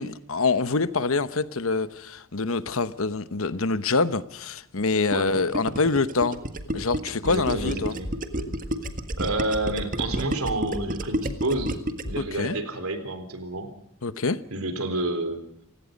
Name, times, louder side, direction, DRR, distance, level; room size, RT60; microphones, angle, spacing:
voice 1, 0.0-6.4 6.7-8.0 12.2-12.5 14.0-14.4, left 3 dB, 70° left, 14 dB, 1.1 m, -25 dB
Gurgling, 5.1-12.2, right 1 dB, 40° right, 1.7 m, -30 dB
sound 1, 7.2-7.7 8.0-8.5 8.8-9.3 9.6-10.1 10.4-10.9 11.2-11.7 12.0-12.2, equal, 45° left, 2.9 m, -35 dB
voice 2, 7.3-8.1 9.2-11.7 12.0-13.7 14.5-15.4, right 2 dB, 80° right, 9 dB, 3.8 m, -29 dB
29.0 x 17.0 x 5.3 m, 0.72 s
head